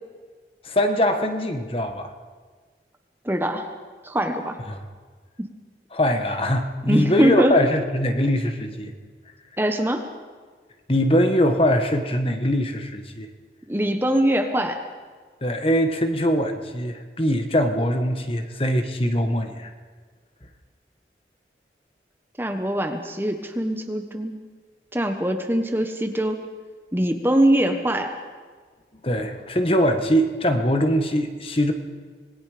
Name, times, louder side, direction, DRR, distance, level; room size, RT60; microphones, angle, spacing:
voice 1, 0.6-2.1 4.7-4.8 5.9-8.9 10.9-13.3 15.4-19.7 29.0-31.7, equal, 30° left, 6 dB, 1.5 m, -22 dB
voice 2, 3.2-3.7 4.0-4.6 5.4-5.5 6.8-7.5 9.6-10.0 13.7-14.8 22.4-24.4 24.9-26.5 26.9-28.2, right 1 dB, 10° right, 6 dB, 1.2 m, -22 dB
26.5 x 20.5 x 5.2 m, 1.5 s
head